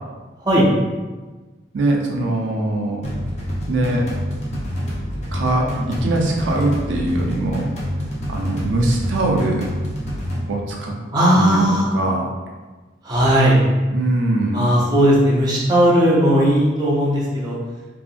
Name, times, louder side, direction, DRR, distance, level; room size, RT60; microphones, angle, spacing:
voice 1, 1.7-3.0 3.7-4.1 5.3-7.6 8.3-9.7 10.5-10.9 11.3-11.6 11.9-12.3 13.9-14.6, right 2 dB, 80° right, -1 dB, 0.4 m, -21 dB
sound 1, 3.0-10.4, equal, 35° left, 0.5 m, -27 dB
voice 2, 11.1-11.9 13.0-13.6 14.5-17.6, equal, 20° right, -6 dB, 0.5 m, -16 dB
2.7 x 2.4 x 2.4 m, 1.3 s
head